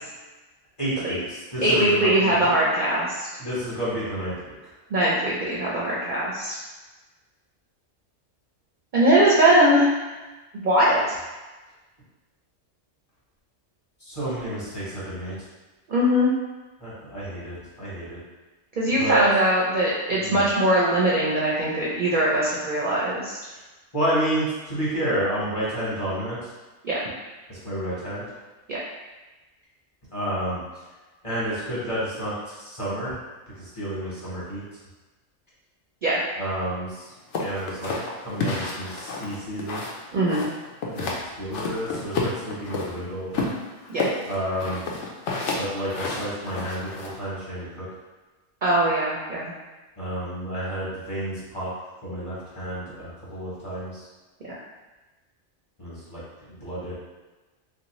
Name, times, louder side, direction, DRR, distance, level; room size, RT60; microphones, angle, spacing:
voice 1, 0.8-2.5 3.4-4.5 14.1-15.4 16.8-18.2 18.9-19.2 20.2-20.4 23.9-26.4 27.5-28.2 30.1-30.6 31.2-32.3 32.7-33.1 33.8-34.6 36.4-36.9 37.4-37.9 38.2-39.8 40.9-41.1 41.4-43.5 44.3-44.8 45.6-47.8 50.0-51.7 52.0-53.9 55.8-56.2 56.6-56.9, right 1 dB, 25° left, -9 dB, 1.1 m, -30 dB
voice 2, 1.6-3.3 4.9-6.5 8.9-9.9 10.6-11.0 15.9-16.3 18.8-23.4 26.8-27.0 28.7-28.8 36.0-36.2 40.1-40.4 43.9-44.0 48.6-49.5 54.4-54.6, right 1 dB, 55° right, -6 dB, 0.6 m, -21 dB
sound 1, 37.3-40.0 40.3-41.2 41.5-42.9 43.3-47.1, left 3 dB, 75° left, 0.9 m, -29 dB
3.1 x 2.6 x 3.0 m, 1.2 s
omnidirectional pair, 1.3 m